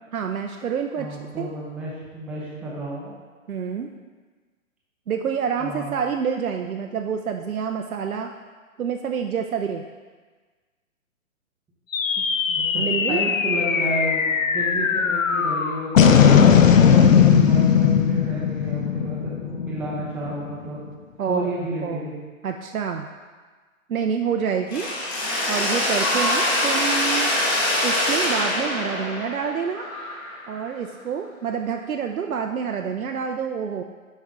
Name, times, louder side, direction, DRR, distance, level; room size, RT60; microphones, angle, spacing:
voice 1, 0.1-1.1 1.4-1.5 3.5-3.9 5.1-8.3 8.8-9.8 12.2-12.3 12.7-13.3 17.0-17.1 21.2-21.5 21.8-22.1 22.4-23.1 23.9-24.9 25.5-27.3 27.8-29.8 30.5-33.8, right 7 dB, 90° right, 3 dB, 0.6 m, -27 dB
voice 2, 1.0-3.1 5.6-6.0 12.5-20.8 21.3-22.1, right 1 dB, 5° right, -6 dB, 0.6 m, -31 dB
sound 1, 11.9-20.5, left 7 dB, 70° left, 0.8 m, -18 dB
Mechanisms, 24.7-30.6, left 1 dB, 20° left, 1.7 m, -24 dB
8.9 x 5.4 x 3.5 m, 1.4 s
hypercardioid pair, 140°, 41 cm